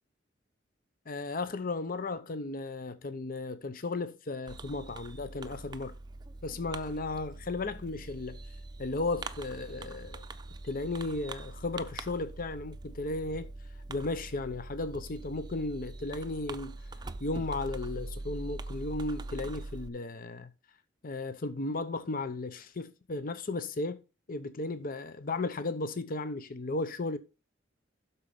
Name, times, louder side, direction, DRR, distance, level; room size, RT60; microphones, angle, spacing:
voice 1, 1.1-5.9 6.4-8.4 8.8-10.2 10.6-13.5 13.9-16.8 17.2-20.5 21.0-24.0 24.3-27.2, left 2 dB, 50° left, 0.7 m, -35 dB
Fireworks, 4.5-19.9, right 2 dB, 20° right, 0.6 m, -43 dB
12.0 x 4.4 x 5.3 m
head